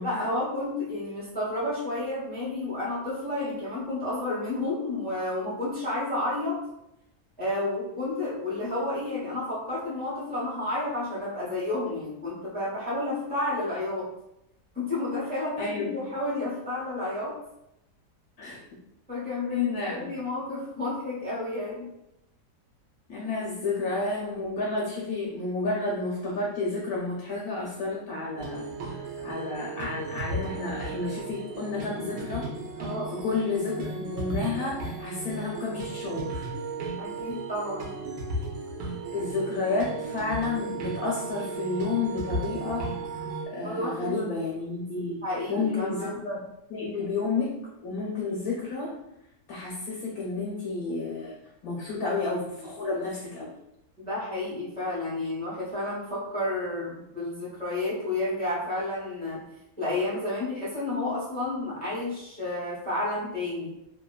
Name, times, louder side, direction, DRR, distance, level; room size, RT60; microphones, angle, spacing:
voice 1, 0.0-6.6 7.4-14.1 14.7-17.3 19.1-21.9 32.8-33.1 37.0-37.9 43.6-44.3 45.2-46.2 46.9-47.0 54.0-59.4 59.8-63.7, left 2 dB, 15° left, -8 dB, 0.3 m, -31 dB
voice 2, 15.6-16.0 18.4-18.6 19.5-20.1 23.1-28.6 29.2-32.5 33.2-36.5 39.1-42.9 43.5-45.2 45.5-46.4 46.7-47.5 47.8-48.9 49.5-51.4 51.6-53.5, left 3 dB, 70° left, -3 dB, 0.9 m, -31 dB
sound 1, 28.4-43.5, right 2 dB, 70° right, 1.0 m, -35 dB
2.8 x 2.3 x 2.3 m, 0.84 s
omnidirectional pair, 1.8 m